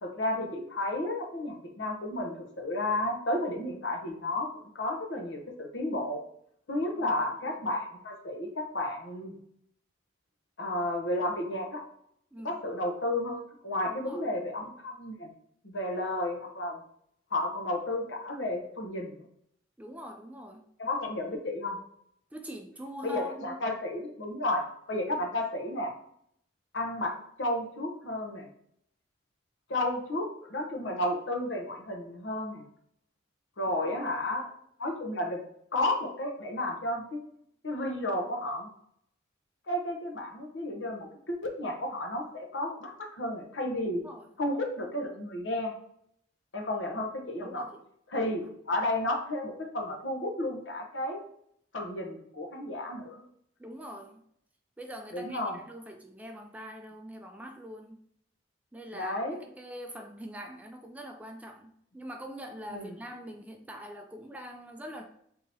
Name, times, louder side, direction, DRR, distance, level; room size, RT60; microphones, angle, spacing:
voice 1, 0.0-4.5 4.7-6.2 6.7-9.4 10.6-11.8 12.4-15.3 15.6-16.8 17.3-19.2 20.8-21.8 23.0-25.9 26.7-27.1 27.4-28.5 29.7-32.6 33.6-34.5 34.8-35.5 35.7-37.2 37.6-38.7 39.7-44.0 44.4-45.7 46.5-47.6 48.1-51.2 51.7-53.2 55.1-55.6 58.9-59.4 62.7-62.9, left 1 dB, 70° left, 2 dB, 0.9 m, -32 dB
voice 2, 13.9-14.2 19.8-20.6 22.3-23.6 33.9-34.0 44.0-44.3 47.4-47.8 48.1-48.3 53.6-54.2 54.8-58.0 58.7-65.0, equal, 10° right, 3 dB, 0.3 m, -43 dB
3.8 x 2.8 x 4.1 m, 0.70 s
head